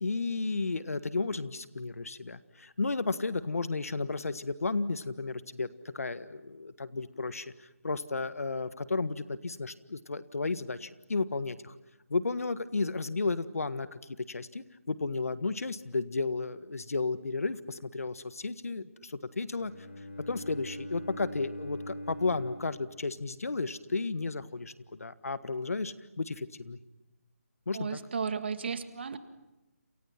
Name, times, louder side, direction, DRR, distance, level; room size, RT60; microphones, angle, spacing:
voice 1, 0.0-5.7 5.9-7.5 7.8-11.7 12.1-14.0 14.3-19.7 20.3-26.8 27.7-28.0, left 3 dB, 75° left, 13 dB, 1.6 m, -33 dB
Bowed string instrument, 19.5-23.6, equal, 55° left, 6.2 m, -43 dB
voice 2, 27.7-29.2, right 6 dB, 45° right, 9 dB, 2.0 m, -34 dB
30.0 x 28.5 x 5.9 m, 0.98 s
figure-of-eight pair, 165°, 8 cm